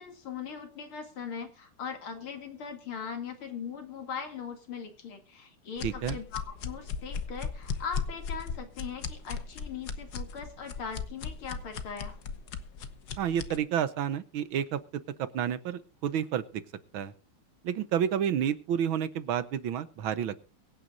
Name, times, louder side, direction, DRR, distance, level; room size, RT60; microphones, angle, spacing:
voice 1, 0.0-12.2, left 6 dB, 75° left, 6 dB, 3.3 m, -40 dB
sound 1, 5.8-13.6, left 5 dB, 55° left, 1.5 m, -37 dB
voice 2, 5.8-6.2 13.2-14.8 15.2-16.4 16.9-17.1 17.6-20.4, right 9 dB, 70° right, 14 dB, 1.7 m, -30 dB
23.0 x 9.2 x 2.5 m, 0.32 s
omnidirectional pair, 2.4 m